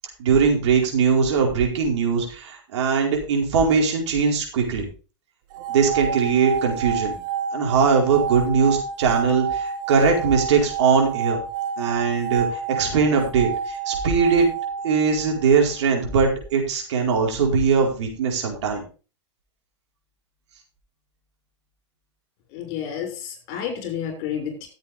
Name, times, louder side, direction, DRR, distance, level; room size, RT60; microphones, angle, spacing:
voice 1, 0.2-4.9 5.7-7.2 7.5-11.4 11.8-14.5 14.8-18.8, right 5 dB, 70° right, 0 dB, 4.7 m, -21 dB
sound 1, 5.5-15.7, right 7 dB, 50° right, 2.2 m, -29 dB
voice 2, 22.5-24.7, left 8 dB, 50° left, 4 dB, 6.1 m, -30 dB
15.0 x 8.1 x 3.6 m, 0.35 s
hypercardioid pair, 120°, 16 cm